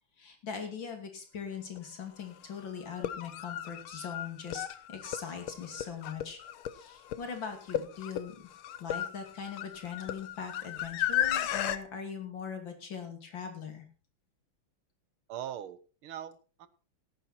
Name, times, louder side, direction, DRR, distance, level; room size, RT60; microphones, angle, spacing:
voice 1, 0.2-6.4 6.7-8.3 8.8-13.9, left 6 dB, 60° left, 5 dB, 3.3 m, -41 dB
sound 1, 1.8-1.9 2.9-11.8, left 11 dB, 80° left, 1.7 m, -35 dB
voice 2, 15.3-16.7, right 10 dB, 80° right, 15 dB, 1.9 m, -41 dB
17.5 x 9.4 x 4.3 m, 0.36 s
omnidirectional pair, 2.3 m